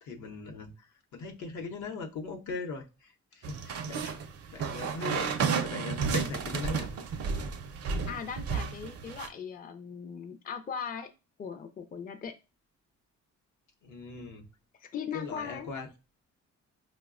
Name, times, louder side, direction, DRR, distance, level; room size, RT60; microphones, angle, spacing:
voice 1, 0.0-0.9 1.1-4.1 4.5-6.9 13.8-14.4 15.1-15.9, left 4 dB, 70° left, 0.7 m, -39 dB
sound 1, 3.4-9.3, right 5 dB, 55° right, 0.5 m, -32 dB
voice 2, 8.1-11.1 11.4-12.3 14.8-15.7, left 6 dB, 30° left, 0.4 m, -39 dB
4.7 x 2.1 x 2.4 m
cardioid pair, 90°, 30 cm